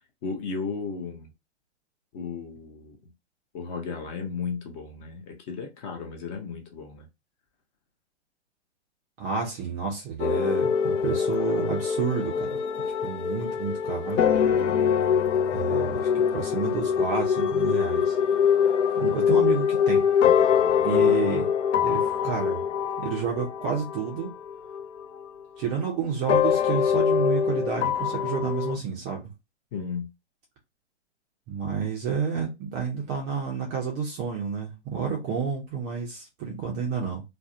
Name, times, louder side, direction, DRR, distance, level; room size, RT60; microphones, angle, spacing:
voice 1, 0.2-1.3 2.1-3.0 3.5-7.1 20.9-21.2 29.7-30.1, left 5 dB, 30° left, 0.6 m, -34 dB
voice 2, 9.2-12.6 13.0-14.2 15.5-18.2 19.0-20.1 20.8-21.5 21.8-22.6 23.0-24.3 25.6-29.3 31.5-37.2, right 6 dB, 20° right, 0.4 m, -30 dB
sound 1, 10.2-25.3 26.3-28.8, left 7 dB, 80° left, 0.5 m, -24 dB
2.5 x 2.1 x 2.5 m
hypercardioid pair, 125°, 36 cm